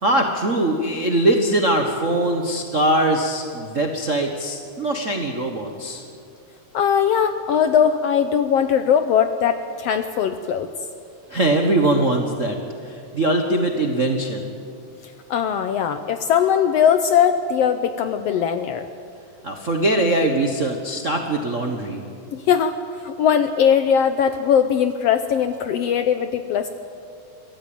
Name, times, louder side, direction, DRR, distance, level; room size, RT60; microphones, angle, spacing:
voice 1, 0.0-6.0 11.3-14.5 19.4-22.0, right 1 dB, 55° right, 2 dB, 0.8 m, -22 dB
voice 2, 6.7-10.7 15.0-18.9 22.3-26.7, left 8 dB, 75° left, 9 dB, 1.5 m, -20 dB
23.5 x 15.0 x 8.8 m, 2.5 s
omnidirectional pair, 3.5 m